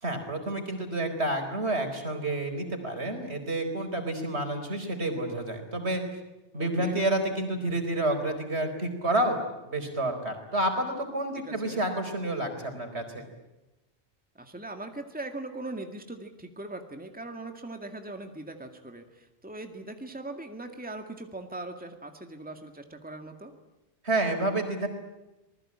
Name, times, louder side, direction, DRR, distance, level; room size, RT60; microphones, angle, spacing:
voice 1, 0.0-6.0 6.5-9.4 9.6-13.2 24.0-24.9, right 1 dB, 65° right, 6 dB, 4.7 m, -29 dB
voice 2, 6.5-7.0 11.4-11.8 14.4-23.5, right 2 dB, 5° right, 5 dB, 2.1 m, -40 dB
27.0 x 20.0 x 8.8 m, 0.99 s
omnidirectional pair, 1.2 m